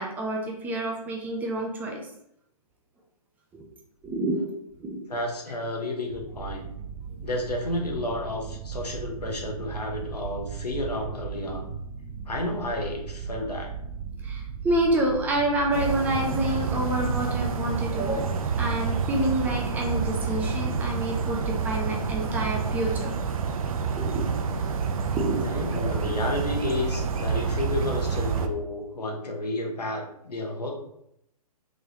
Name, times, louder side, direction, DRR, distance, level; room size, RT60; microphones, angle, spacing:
voice 1, 0.0-2.0 3.5-3.6 4.0-4.4 4.8-5.0 14.2-23.2 24.0-24.3 24.6-24.8 25.2-25.9, right 1 dB, 10° right, 0 dB, 0.3 m, -28 dB
voice 2, 5.1-6.7 7.2-11.7 12.3-13.7 25.4-30.7, left 2 dB, 90° left, 1 dB, 1.0 m, -31 dB
sound 1, 6.0-20.7, right 6 dB, 35° right, 0.9 m, -37 dB
sound 2, 15.7-28.5, right 5 dB, 65° right, 0.5 m, -28 dB
3.7 x 3.1 x 2.7 m, 0.77 s
hypercardioid pair, 130°, 20 cm